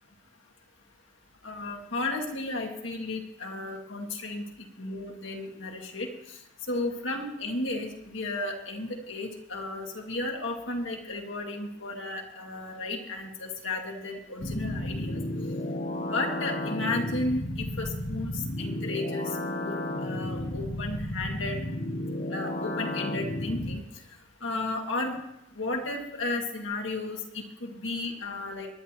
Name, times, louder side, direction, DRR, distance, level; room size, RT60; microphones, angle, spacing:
voice 1, 1.4-4.4 4.8-6.4 6.7-15.2 16.0-21.6 22.3-23.8 24.4-25.2 25.6-28.7, left 2 dB, 70° left, 1 dB, 2.1 m, -33 dB
sound 1, 14.4-23.8, left 1 dB, 45° left, 0.9 m, -33 dB
25.0 x 10.5 x 3.0 m, 0.87 s
head